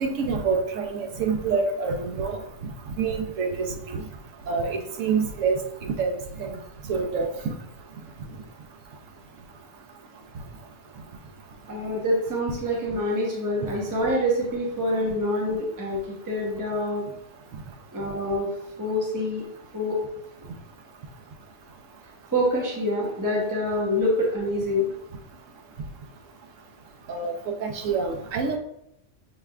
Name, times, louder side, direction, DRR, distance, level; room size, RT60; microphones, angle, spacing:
voice 1, 0.0-2.4 3.0-4.0 4.5-5.6 6.0-6.1 6.4-6.6 6.9-7.5 27.1-27.3 27.6-28.6, right 5 dB, 85° right, 3 dB, 1.1 m, -26 dB
voice 2, 11.7-17.0 17.9-18.5 18.8-19.4 19.7-20.0 22.3-24.9, left 1 dB, 15° right, -3 dB, 0.8 m, -26 dB
6.3 x 3.3 x 2.4 m, 0.78 s
omnidirectional pair, 1.3 m